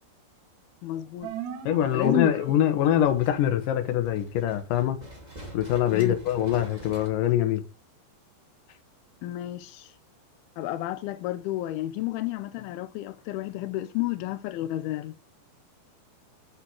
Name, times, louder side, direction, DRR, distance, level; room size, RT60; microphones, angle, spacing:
voice 1, 0.8-1.3 1.9-2.5 5.9-6.2 9.2-9.9 10.6-15.2, left 15 dB, 90° left, 2.2 m, -31 dB
sound 1, 1.2-3.2, right 9 dB, 75° right, 3.5 m, -36 dB
voice 2, 1.6-5.0 5.5-7.6, left 11 dB, 65° left, 2.3 m, -24 dB
sound 2, 1.8-7.1, right 1 dB, 15° right, 1.7 m, -46 dB
8.5 x 6.6 x 4.8 m
omnidirectional pair, 5.1 m